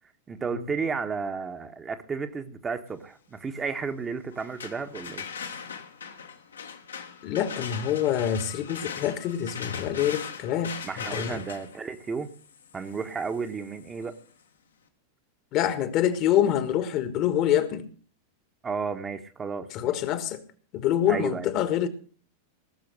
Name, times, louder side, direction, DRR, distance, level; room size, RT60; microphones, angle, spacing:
voice 1, 0.3-5.2 10.8-12.3 12.7-14.1 18.6-20.0 21.1-21.5, right 5 dB, 20° right, 1.2 m, -33 dB
sound 1, 4.3-14.2, left 6 dB, 70° left, 1.5 m, -40 dB
voice 2, 7.2-11.4 15.5-17.9 19.7-20.4 20.7-21.9, left 10 dB, 40° left, 1.4 m, -26 dB
18.5 x 7.0 x 6.6 m
figure-of-eight pair, 90°, 0 cm